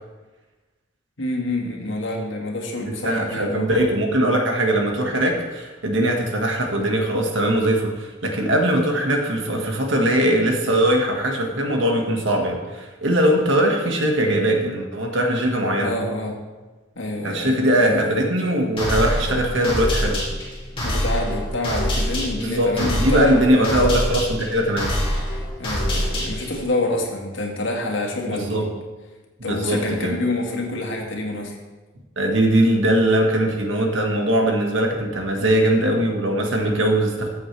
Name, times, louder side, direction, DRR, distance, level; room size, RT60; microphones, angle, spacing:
voice 1, 1.2-3.7 14.5-14.7 15.8-16.4 17.0-18.2 20.8-23.9 25.6-28.7 29.4-31.6, left 2 dB, 85° left, 0 dB, 1.9 m, -27 dB
voice 2, 2.8-15.9 17.2-20.2 22.4-24.9 28.3-28.7 29.4-30.1 32.1-37.3, right 1 dB, 75° right, 1 dB, 1.8 m, -21 dB
sound 1, 18.8-26.6, equal, 30° left, 2.8 m, -25 dB
14.0 x 7.7 x 3.4 m, 1.2 s
head